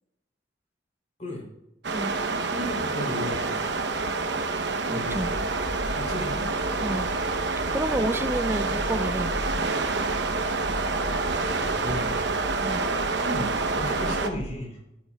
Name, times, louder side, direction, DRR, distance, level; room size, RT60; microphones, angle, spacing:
sound 1, 1.8-14.3, right 3 dB, 70° right, 0.9 m, -28 dB
voice 1, 2.4-3.6 4.9-5.4 5.9-6.5 11.6-12.2 13.2-14.8, left 1 dB, 40° left, -1 dB, 3.3 m, -34 dB
voice 2, 4.9-5.3 6.8-7.1 7.7-9.3 12.6-12.9, right 1 dB, 10° right, 10 dB, 0.4 m, -29 dB
sound 2, 5.1-14.5, left 1 dB, 55° left, 1.2 m, -37 dB
13.0 x 10.5 x 2.3 m, 0.92 s
head